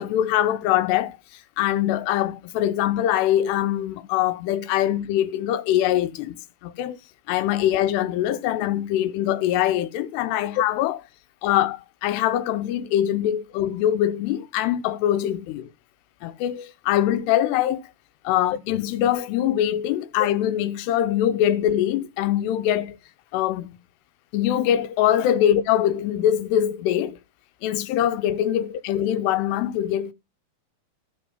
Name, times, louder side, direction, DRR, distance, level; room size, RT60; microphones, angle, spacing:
voice 1, 0.0-7.0 7.3-11.0 11.4-15.7 16.2-17.8 18.3-23.0 23.3-23.8 24.3-27.2 27.6-30.1, left 11 dB, 85° left, 2.8 m, -23 dB
14.0 x 5.3 x 5.4 m
omnidirectional pair, 4.8 m